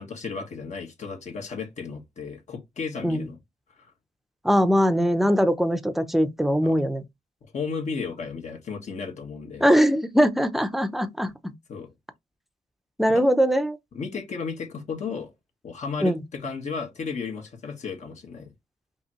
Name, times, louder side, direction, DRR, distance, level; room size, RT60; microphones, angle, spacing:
voice 1, 0.0-3.4 6.6-6.7 7.5-9.6 11.7-11.9 13.1-13.2 13.9-15.3 15.6-18.5, left 5 dB, 60° left, 1.6 m, -34 dB
voice 2, 4.4-7.0 9.6-11.5 13.0-13.8 16.0-16.2, equal, ahead, 0.7 m, -21 dB
5.5 x 2.9 x 3.0 m
wide cardioid pair, 125°, 13 cm